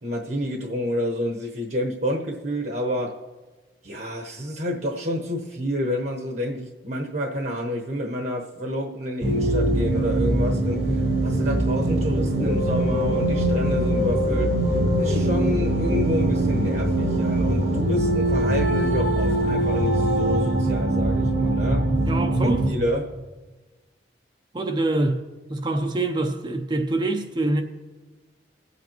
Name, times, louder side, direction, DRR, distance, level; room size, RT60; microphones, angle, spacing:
voice 1, 0.0-3.2 3.8-14.5 15.0-21.8 22.4-23.0, equal, 55° right, 1.0 m, -29 dB
sound 1, 9.2-22.7, right 1 dB, 85° right, 1.9 m, -22 dB
voice 2, 22.0-22.7 24.5-25.2 25.5-27.6, right 2 dB, 25° right, 0.5 m, -25 dB
21.5 x 8.3 x 2.9 m
head